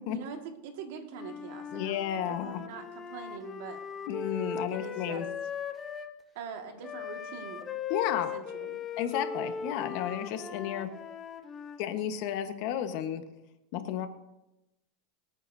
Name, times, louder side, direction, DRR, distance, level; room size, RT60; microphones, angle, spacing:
voice 1, 0.1-3.8 4.7-5.2 6.4-7.7 8.1-8.8, right 6 dB, 70° right, 5 dB, 1.8 m, -43 dB
Wind instrument woodwind instrument, 1.1-6.1 6.8-11.8, left 6 dB, 20° left, 0.9 m, -39 dB
voice 2, 1.7-2.6 4.1-5.3 7.9-8.3 9.0-10.9 11.8-13.2 13.7-14.1, left 10 dB, 55° left, 8 dB, 1.2 m, -32 dB
25.0 x 8.9 x 2.7 m, 0.91 s
supercardioid pair, 150°, 0 cm